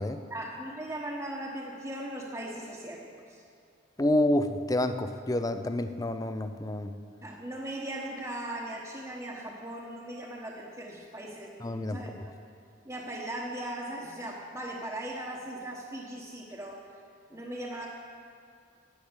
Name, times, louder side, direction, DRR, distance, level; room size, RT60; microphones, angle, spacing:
voice 1, 0.3-3.0 3.3-3.4 7.2-12.1 12.8-16.9 17.3-17.9, right 1 dB, 15° right, -5 dB, 1.1 m, -38 dB
voice 2, 4.0-6.9 11.6-12.0, left 1 dB, 20° left, 8 dB, 0.5 m, -28 dB
10.5 x 10.0 x 8.0 m, 2.3 s
head